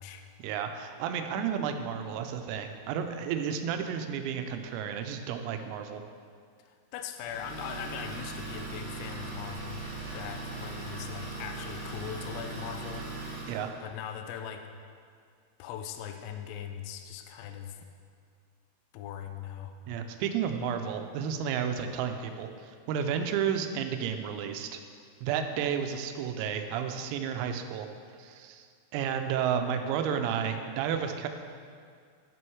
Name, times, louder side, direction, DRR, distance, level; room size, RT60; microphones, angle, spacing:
voice 1, 0.4-6.0 13.5-13.7 19.9-24.8 25.2-27.9 28.2-28.7 28.9-31.3, right 7 dB, 90° right, 6 dB, 3.4 m, -32 dB
voice 2, 6.6-9.8 10.1-13.1 13.8-14.7 15.6-17.9 18.9-19.7, left 8 dB, 85° left, 6 dB, 3.3 m, -40 dB
Idling, 7.2-13.7, right 3 dB, 50° right, 4.0 m, -39 dB
11.0 x 6.2 x 4.6 m, 2.1 s
omnidirectional pair, 6.0 m